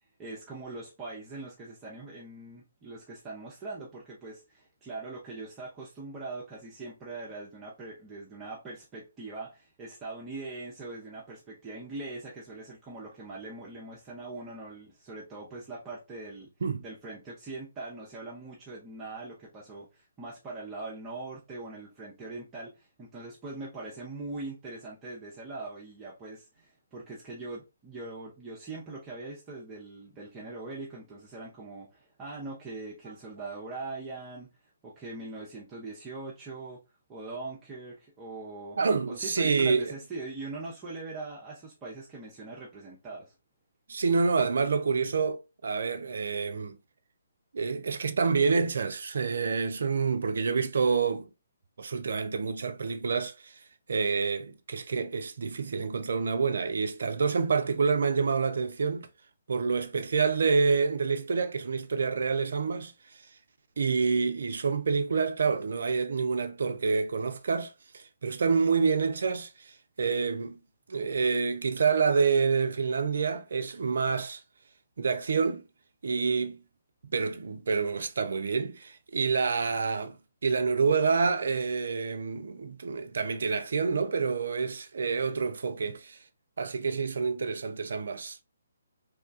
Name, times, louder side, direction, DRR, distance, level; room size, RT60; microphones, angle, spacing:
voice 1, 0.2-16.5 16.8-34.5 34.8-36.8 37.1-38.8 39.1-43.3, right 3 dB, 20° right, 0.6 m, -41 dB
voice 2, 38.8-39.9 43.9-46.8 47.5-51.3 51.8-53.6 53.9-59.1 59.5-62.9 63.8-70.6 70.9-74.4 75.0-75.6 76.0-76.6 77.1-80.2 80.4-86.2 86.6-88.4, right 5 dB, 60° right, 0.3 m, -28 dB
3.0 x 2.2 x 2.5 m
figure-of-eight pair, 135°, 0 cm